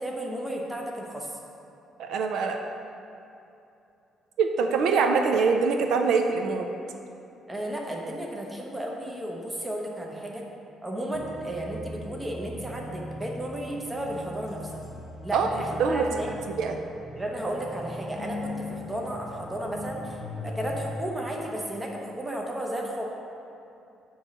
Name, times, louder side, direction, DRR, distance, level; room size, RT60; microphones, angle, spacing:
voice 1, 0.0-1.3 7.5-10.4 10.8-14.7 15.2-16.3 17.1-23.0, right 1 dB, 10° right, -1 dB, 0.8 m, -33 dB
voice 2, 2.0-2.6 4.4-6.7 15.3-16.0 16.5-16.8, right 5 dB, 70° right, 4 dB, 0.5 m, -24 dB
sound 1, 11.1-21.0, left 1 dB, 45° left, 0.9 m, -39 dB
8.9 x 3.1 x 6.4 m, 2.7 s
cardioid pair, 170°, 0 cm